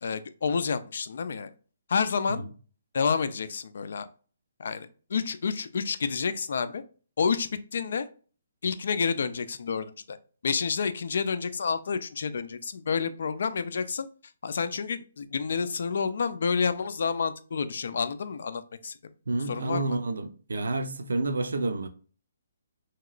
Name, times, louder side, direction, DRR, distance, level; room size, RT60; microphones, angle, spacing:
voice 1, 0.0-1.5 1.9-2.4 2.9-4.1 4.6-6.8 7.2-8.1 8.6-10.2 10.4-14.1 14.4-19.0 19.5-20.0, left 5 dB, 60° left, 0.3 m, -29 dB
voice 2, 19.3-21.9, right 2 dB, 85° right, 0.5 m, -29 dB
2.9 x 2.9 x 2.4 m
hypercardioid pair, 170°, 0 cm